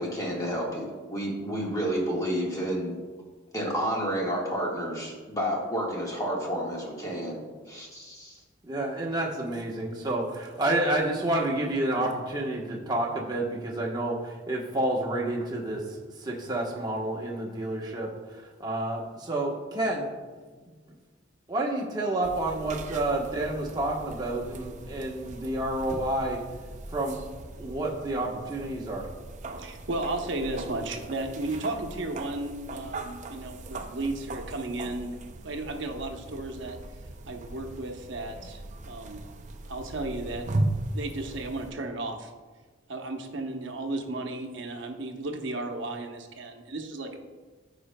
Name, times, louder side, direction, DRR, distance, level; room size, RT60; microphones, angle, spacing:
voice 1, 0.0-3.0 3.5-7.4 7.7-8.4, equal, 15° left, -3 dB, 1.5 m, -30 dB
voice 2, 8.6-20.1 21.5-26.4 26.9-27.3 27.6-29.1, right 1 dB, 20° right, -2 dB, 1.0 m, -29 dB
sound 1, 22.2-41.7, right 2 dB, 40° right, 0.5 m, -38 dB
voice 3, 29.6-35.2 35.4-36.8 37.3-38.6 38.9-39.2 39.7-40.5 40.9-42.3 42.9-47.2, right 2 dB, 65° right, 4 dB, 0.9 m, -34 dB
14.5 x 5.0 x 2.2 m, 1.4 s
head